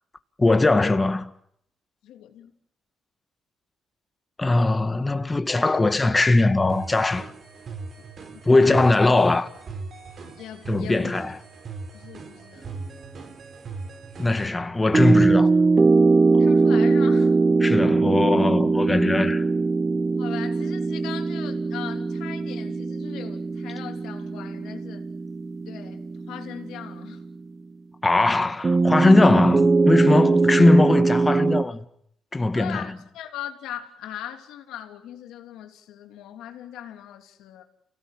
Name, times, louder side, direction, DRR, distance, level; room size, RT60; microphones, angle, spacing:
voice 1, 0.4-1.3 4.4-7.3 8.4-9.5 10.7-11.4 14.2-15.5 17.6-19.5 28.0-31.8 32.3-32.9, left 2 dB, 20° left, 1.8 m, -20 dB
voice 2, 2.0-2.5 8.6-8.9 10.4-11.1 11.9-12.7 16.4-17.4 20.2-25.1 25.6-27.2 32.5-37.6, left 11 dB, 90° left, 3.2 m, -39 dB
sound 1, 6.7-14.5, right 4 dB, 55° right, 4.2 m, -39 dB
sound 2, 14.9-27.4 28.6-31.6, right 3 dB, 30° right, 1.1 m, -21 dB
30.0 x 18.0 x 9.2 m
cardioid pair, 90°, 0 cm